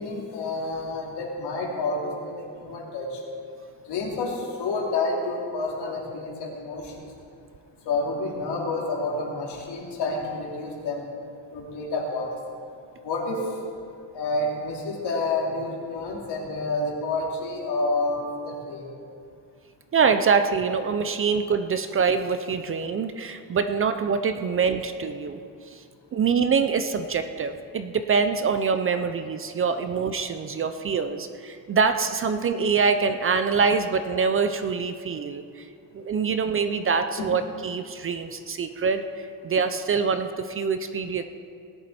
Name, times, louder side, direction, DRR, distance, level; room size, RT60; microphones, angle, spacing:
voice 1, 0.0-2.1 2.6-3.2 3.9-6.9 7.9-11.0 11.5-12.3 13.0-13.4 14.1-18.9 37.2-37.3, left 3 dB, 70° left, -2 dB, 2.9 m, -29 dB
voice 2, 19.9-25.4 25.7-25.8 26.1-35.7 35.9-39.0 39.4-41.2, right 5 dB, 30° right, 9 dB, 0.4 m, -25 dB
18.5 x 10.5 x 4.2 m, 2.4 s
cardioid pair, 170°, 42 cm